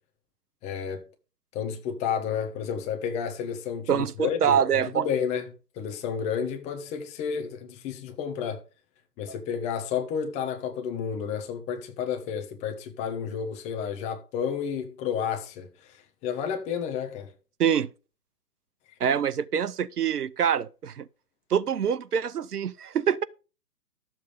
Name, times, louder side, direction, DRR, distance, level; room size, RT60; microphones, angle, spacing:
voice 1, 0.6-1.1 1.5-8.6 9.2-17.3, left 7 dB, 15° left, 1.1 m, -31 dB
voice 2, 3.9-5.1 17.6-17.9 19.0-21.0 21.5-23.2, right 8 dB, 70° right, 0.9 m, -25 dB
12.5 x 7.4 x 5.0 m
figure-of-eight pair, 140°, 48 cm